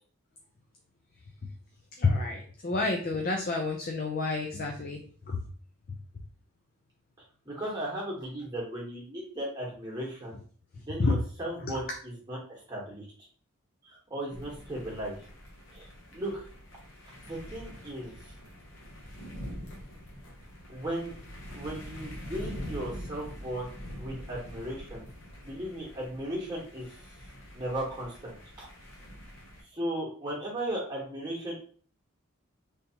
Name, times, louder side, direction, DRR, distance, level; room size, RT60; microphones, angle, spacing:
voice 1, 2.0-5.5 11.0-11.2 11.6-11.8, left 3 dB, 40° left, 1 dB, 0.4 m, -29 dB
voice 2, 7.4-10.4 10.7-13.0 13.8-15.1 15.7-16.5 17.0-18.3 20.7-21.2 21.5-23.7 24.0-25.1 25.4-27.0 27.5-28.7 29.7-31.6, right 1 dB, 20° right, -4 dB, 1.2 m, -36 dB
sound 1, 14.3-29.6, equal, 60° left, 1.0 m, -45 dB
3.5 x 2.7 x 2.8 m, 0.43 s
head